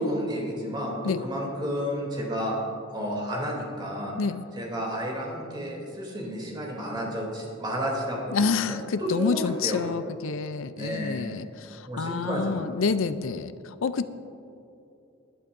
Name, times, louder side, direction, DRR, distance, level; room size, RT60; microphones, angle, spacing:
voice 1, 0.0-2.6 2.9-4.1 4.6-9.8 10.7-11.3 11.9-12.6, equal, 20° right, -2 dB, 3.0 m, -31 dB
voice 2, 8.3-14.1, left 5 dB, 75° left, 12 dB, 0.5 m, -28 dB
20.0 x 11.0 x 2.6 m, 2.7 s
head